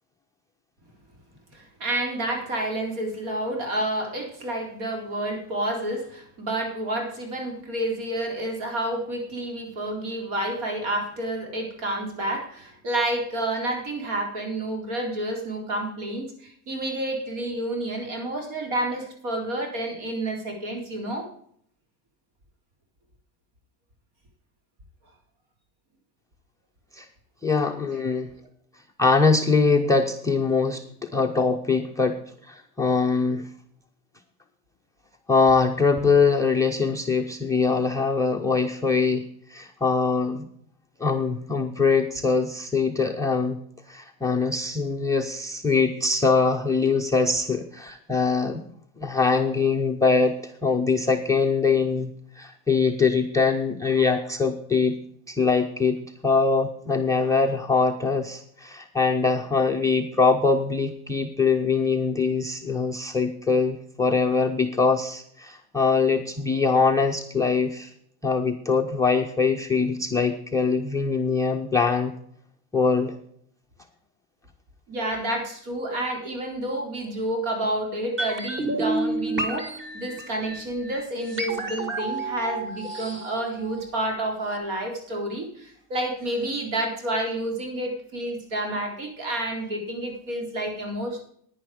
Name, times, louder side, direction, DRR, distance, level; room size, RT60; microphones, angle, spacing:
voice 1, 1.5-21.3 74.9-91.2, right 1 dB, 70° right, 3 dB, 4.0 m, -29 dB
voice 2, 27.4-28.3 29.0-30.8 31.1-32.2 32.5-33.5 35.3-39.2 39.5-40.4 41.0-43.6 43.9-48.6 49.0-52.1 52.4-55.0 55.3-56.0 56.2-67.9 68.2-72.1 72.7-73.1, left 4 dB, 10° left, 8 dB, 0.3 m, -23 dB
sound 1, 78.2-84.2 84.5-84.6, right 2 dB, 25° right, 1.6 m, -31 dB
10.5 x 9.8 x 5.0 m, 0.65 s
cardioid pair, 160°, 47 cm